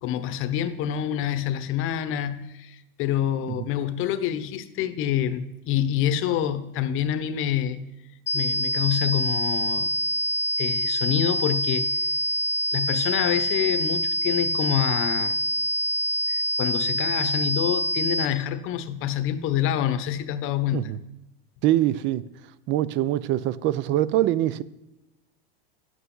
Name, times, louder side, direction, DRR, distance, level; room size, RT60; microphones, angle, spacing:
voice 1, 0.0-7.8 8.3-10.0 10.6-11.9 12.7-15.4 16.3-20.9, left 10 dB, 45° left, 0.9 m, -27 dB
sound 1, 8.3-18.3, equal, 20° left, 0.6 m, -26 dB
voice 2, 21.6-22.2 22.7-24.6, right 13 dB, 40° right, 0.5 m, -23 dB
11.0 x 8.3 x 3.9 m
supercardioid pair, 125°, 30 cm